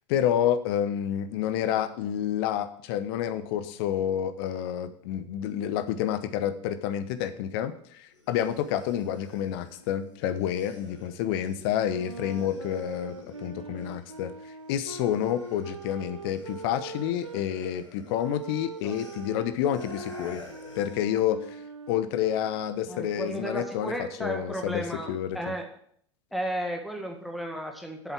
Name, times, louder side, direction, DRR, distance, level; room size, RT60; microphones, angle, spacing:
voice 1, 0.1-20.4 20.8-21.6 21.9-23.9 24.2-24.8 25.1-25.4, left 10 dB, 55° left, 12 dB, 1.0 m, -29 dB
sound 1, 8.1-14.3 14.6-21.1, left 2 dB, 85° left, 2.5 m, -51 dB
sound 2, 11.8-17.4 18.1-23.7, right 3 dB, 85° right, 0.6 m, -42 dB
voice 2, 22.9-25.7 26.3-28.1, equal, ahead, 2 dB, 1.8 m, -34 dB
8.0 x 7.4 x 6.1 m, 0.64 s
figure-of-eight pair, 85°, 15 cm